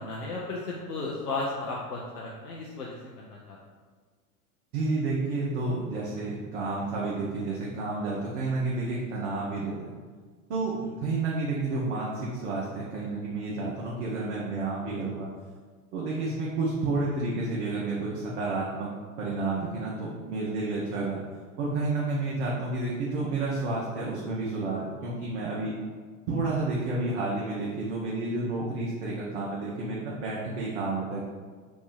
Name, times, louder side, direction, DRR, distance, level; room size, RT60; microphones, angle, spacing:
voice 1, 0.0-3.6 10.8-10.9, left 3 dB, 85° left, -4 dB, 0.6 m, -35 dB
voice 2, 4.7-9.9 10.5-10.7 11.0-15.3 15.9-18.9 19.2-21.2 21.6-25.8 26.3-31.3, right 3 dB, 50° right, -5 dB, 0.7 m, -30 dB
3.0 x 2.5 x 3.8 m, 1.5 s
figure-of-eight pair, 85°, 45 cm